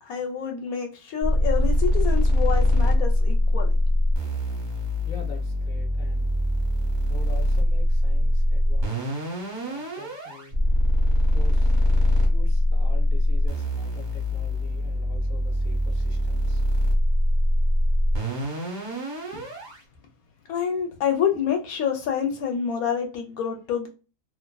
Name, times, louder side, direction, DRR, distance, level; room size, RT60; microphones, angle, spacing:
voice 1, 0.0-3.8 19.3-19.4 20.5-23.9, left 7 dB, 70° left, 1.0 m, -27 dB
sound 1, 1.2-19.8, left 1 dB, 40° right, 0.7 m, -23 dB
voice 2, 5.1-6.3 7.1-9.1 9.7-10.6 11.3-11.7 12.2-16.6, left 4 dB, 50° left, 0.6 m, -45 dB
2.5 x 2.5 x 2.2 m
omnidirectional pair, 1.7 m